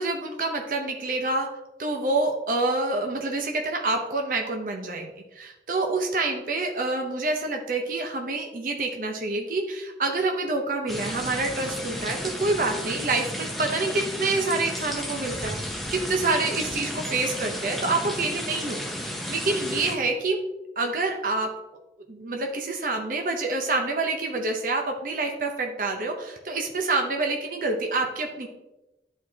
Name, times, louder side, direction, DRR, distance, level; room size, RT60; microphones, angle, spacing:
voice 1, 0.0-1.5 1.8-15.6 15.9-20.4 20.8-21.5 22.1-28.5, right 3 dB, 50° right, 2 dB, 0.7 m, -27 dB
sound 1, 10.9-20.0, equal, ahead, 0.7 m, -33 dB
10.5 x 4.6 x 2.8 m, 0.99 s
head